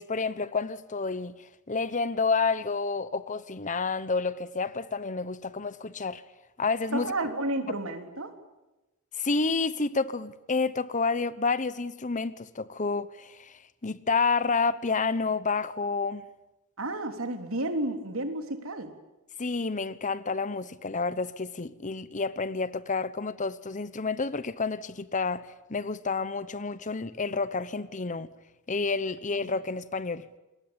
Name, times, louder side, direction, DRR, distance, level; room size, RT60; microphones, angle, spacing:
voice 1, 0.0-1.3 1.7-6.2 6.6-7.1 9.1-16.2 19.4-28.3 28.7-30.2, left 4 dB, 35° left, 1.0 m, -29 dB
voice 2, 6.9-8.3 16.8-18.9, right 1 dB, 65° right, 3.3 m, -31 dB
28.5 x 22.0 x 8.8 m
head